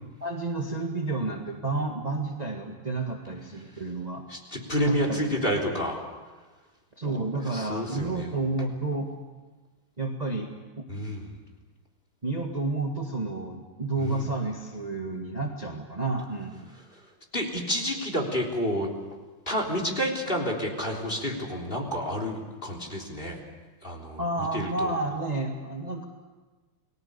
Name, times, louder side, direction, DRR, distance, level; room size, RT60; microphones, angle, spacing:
voice 1, 0.2-4.2 4.9-5.2 7.0-9.1 10.0-10.5 10.8-10.9 12.2-16.7 24.2-26.0, right 2 dB, 20° right, 1 dB, 1.7 m, -30 dB
voice 2, 4.3-6.0 7.5-8.3 10.9-11.3 14.0-14.2 17.3-18.9 19.5-23.4 23.8-24.2 24.5-24.9, equal, 25° left, 2 dB, 3.7 m, -29 dB
29.5 x 20.0 x 6.9 m, 1.3 s
omnidirectional pair, 2.3 m